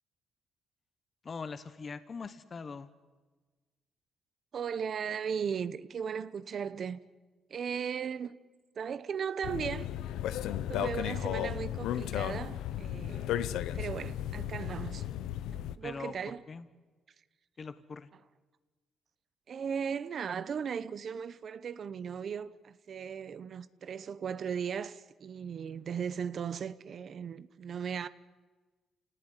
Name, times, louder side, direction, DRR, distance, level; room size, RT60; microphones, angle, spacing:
voice 1, 1.2-2.9 15.8-16.7 17.6-18.1, left 5 dB, 40° left, 1.3 m, -42 dB
voice 2, 4.5-7.0 7.5-8.4 8.8-9.9 10.7-13.4 13.7-15.1 15.7-16.4 19.5-28.1, right 7 dB, 55° right, 1.0 m, -37 dB
sound 1, 9.4-15.7, left 11 dB, 85° left, 0.8 m, -34 dB
28.5 x 18.0 x 9.9 m
cardioid pair, 90°, 0 cm